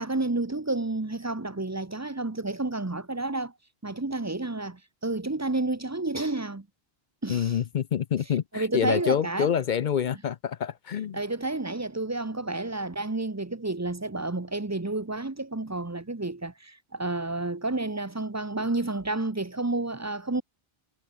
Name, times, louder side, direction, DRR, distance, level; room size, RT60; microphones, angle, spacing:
voice 1, 0.0-3.5 3.8-6.7 7.2-7.6 8.5-9.5 11.1-20.4, right 2 dB, 15° right, 0.8 m, -30 dB
voice 2, 7.3-11.2, left 8 dB, 55° left, 0.6 m, -27 dB
omnidirectional pair, 1.0 m